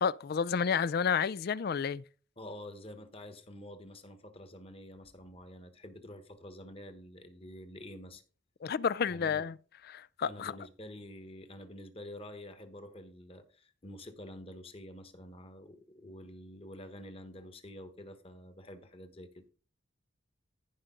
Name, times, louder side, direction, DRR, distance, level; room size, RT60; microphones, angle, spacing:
voice 1, 0.0-2.0 8.6-9.5 9.9-10.5, left 6 dB, 50° left, 0.4 m, -30 dB
voice 2, 2.4-8.2 9.1-9.5 10.2-19.5, left 1 dB, 30° left, 1.3 m, -48 dB
14.5 x 5.2 x 3.8 m
head